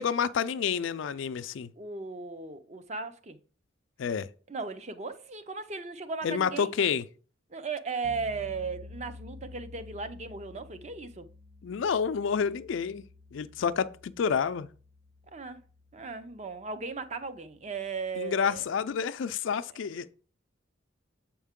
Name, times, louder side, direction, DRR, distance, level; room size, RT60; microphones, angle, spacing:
voice 1, 0.0-1.7 4.0-4.3 6.2-7.0 11.6-13.0 13.3-14.7 18.2-20.1, left 6 dB, 70° left, 0.4 m, -29 dB
voice 2, 1.8-3.4 4.5-6.7 7.5-11.3 15.3-15.6 15.9-18.6, right 4 dB, 35° right, 0.5 m, -36 dB
sound 1, 8.0-18.9, left 2 dB, 50° right, 1.1 m, -51 dB
7.3 x 4.5 x 3.6 m
head